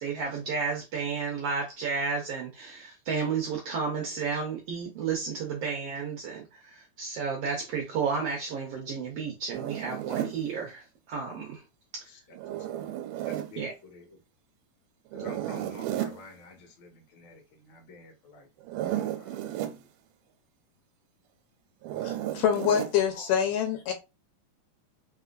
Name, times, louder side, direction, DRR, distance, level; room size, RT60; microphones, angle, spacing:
voice 1, 0.0-11.6 11.9-12.1 13.6-13.7, right 5 dB, 70° right, 1 dB, 1.5 m, -32 dB
Zipper (clothing), 9.5-10.4 12.3-13.5 15.1-16.2 18.6-19.8 21.8-23.0, right 12 dB, 90° right, 2.2 m, -33 dB
voice 2, 12.1-12.9 13.2-14.2 15.1-18.5 18.9-19.9 22.8-23.3, left 3 dB, 55° left, 3 dB, 1.5 m, -49 dB
voice 3, 22.0-23.9, left 9 dB, 85° left, 5 dB, 2.6 m, -26 dB
5.0 x 3.5 x 2.5 m, 0.26 s
omnidirectional pair, 3.7 m